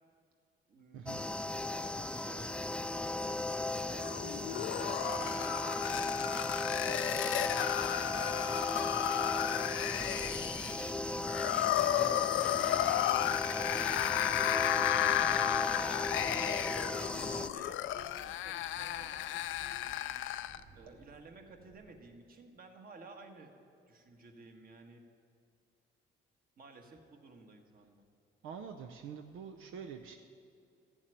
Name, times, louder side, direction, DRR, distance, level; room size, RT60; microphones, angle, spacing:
voice 1, 0.7-1.3 1.6-3.6 3.9-7.2 8.0-9.0 9.7-13.1 13.8-15.6 16.2-19.8 20.7-23.5 23.9-25.0 26.6-28.0, right 3 dB, 45° right, 4 dB, 1.6 m, -55 dB
sound 1, 1.1-17.5, left 2 dB, 5° left, 0.4 m, -36 dB
sound 2, 4.0-20.6, left 13 dB, 80° left, 0.5 m, -33 dB
sound 3, 9.3-22.3, right 3 dB, 30° right, 1.1 m, -58 dB
voice 2, 28.4-30.2, right 7 dB, 85° right, 4 dB, 0.7 m, -45 dB
14.0 x 7.2 x 9.1 m, 2.5 s
cardioid pair, 90°, 20 cm